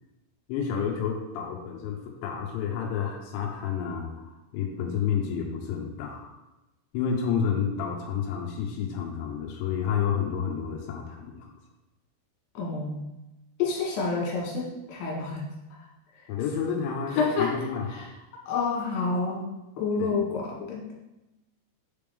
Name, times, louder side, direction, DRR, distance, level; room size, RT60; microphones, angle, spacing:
voice 1, 0.5-6.4 6.9-11.5 16.3-18.1 20.0-20.2, left 7 dB, 85° left, 0 dB, 2.5 m, -30 dB
voice 2, 12.5-13.0 13.6-15.4 17.1-17.5 17.9-18.0 18.5-19.4 19.8-21.0, left 4 dB, 65° left, -3 dB, 3.3 m, -28 dB
9.8 x 3.4 x 3.5 m, 0.97 s
omnidirectional pair, 6.0 m